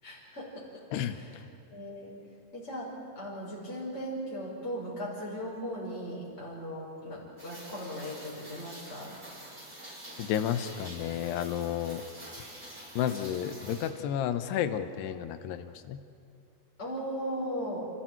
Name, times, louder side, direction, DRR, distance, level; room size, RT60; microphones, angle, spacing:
voice 1, 0.0-1.4 1.7-2.2 2.5-9.2 16.8-17.9, equal, 15° left, -6 dB, 5.1 m, -38 dB
voice 2, 0.9-1.4 10.2-12.0 13.0-16.0, left 10 dB, 80° left, 10 dB, 3.1 m, -32 dB
Rain, 7.4-13.9, right 1 dB, 20° right, 8.0 m, -47 dB
30.0 x 29.5 x 4.6 m, 2.5 s
omnidirectional pair, 4.7 m